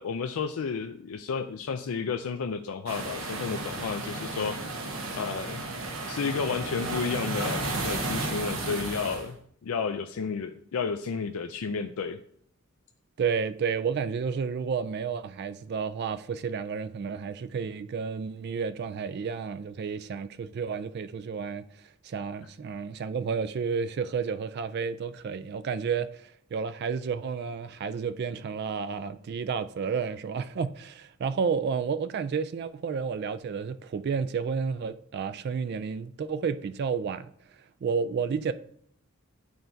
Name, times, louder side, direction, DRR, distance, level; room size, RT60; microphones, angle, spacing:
voice 1, 0.0-4.9 5.1-5.6 6.1-9.4 9.6-12.2, left 5 dB, 85° left, 0.4 m, -32 dB
sound 1, 2.9-9.3, right 2 dB, 70° right, 1.1 m, -33 dB
voice 2, 13.2-37.3 37.8-38.5, right 6 dB, 50° right, 0.3 m, -31 dB
11.0 x 4.4 x 2.7 m
head